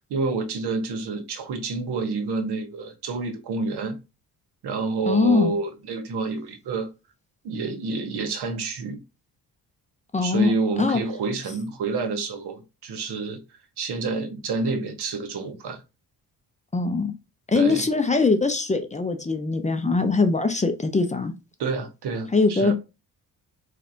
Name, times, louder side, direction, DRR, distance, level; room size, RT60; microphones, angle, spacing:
voice 1, 0.1-4.0 4.6-6.9 7.4-9.0 10.2-13.4 13.8-15.8 17.5-17.9 21.6-22.7, right 4 dB, 80° right, 1.0 m, -28 dB
voice 2, 5.1-5.5 10.1-10.5 10.8-11.0 16.7-17.1 17.5-21.3 22.3-22.7, left 4 dB, 20° left, 0.5 m, -22 dB
4.1 x 3.2 x 2.5 m
cardioid pair, 110°, 39 cm